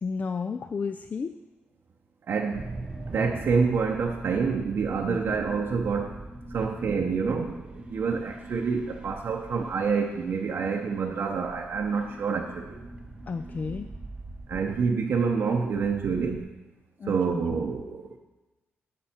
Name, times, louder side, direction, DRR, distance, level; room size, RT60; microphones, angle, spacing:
voice 1, 0.0-1.3 5.1-5.2 13.3-13.9 17.0-17.4, left 5 dB, 35° left, 8 dB, 0.3 m, -32 dB
voice 2, 2.3-2.7 3.1-6.2 6.5-12.8 14.5-16.5 17.0-18.2, right 5 dB, 60° right, 1 dB, 0.7 m, -27 dB
sound 1, 2.5-16.4, right 2 dB, 20° right, 0.8 m, -42 dB
11.5 x 5.4 x 4.3 m, 1.1 s
cardioid pair, 110°, 4 cm